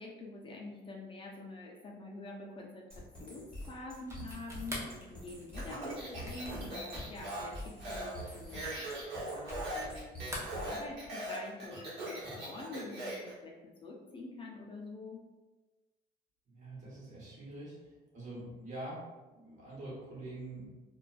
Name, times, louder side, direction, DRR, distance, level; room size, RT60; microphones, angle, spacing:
voice 1, 0.0-10.2 10.6-15.2, left 2 dB, 30° left, -1 dB, 0.4 m, -46 dB
sound 1, 2.9-10.9, left 1 dB, 5° left, 1.0 m, -47 dB
sound 2, 4.0-10.0 10.2-11.3, left 1 dB, 15° right, 0.7 m, -46 dB
Speech, 5.5-13.3, right 1 dB, 75° right, 1.0 m, -41 dB
voice 2, 16.5-20.7, right 1 dB, 50° right, -6 dB, 1.2 m, -45 dB
2.4 x 2.2 x 2.3 m, 1.2 s
cardioid pair, 110°, 17 cm